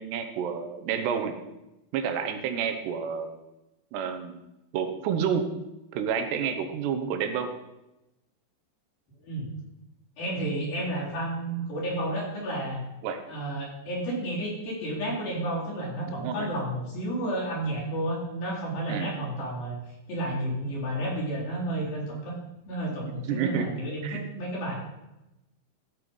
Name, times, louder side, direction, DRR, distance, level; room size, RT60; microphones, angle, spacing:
voice 1, 0.0-1.4 1.9-3.4 3.9-4.4 4.7-5.5 5.9-7.5 13.0-13.2 16.1-16.5 18.9-19.1 23.2-23.7 24.0-24.2, right 7 dB, 80° right, 7 dB, 3.1 m, -29 dB
voice 2, 10.2-12.9 13.3-19.8 20.1-22.4 22.7-24.8, right 1 dB, 60° left, -5 dB, 5.6 m, -31 dB
14.5 x 8.2 x 5.4 m, 0.94 s
omnidirectional pair, 4.8 m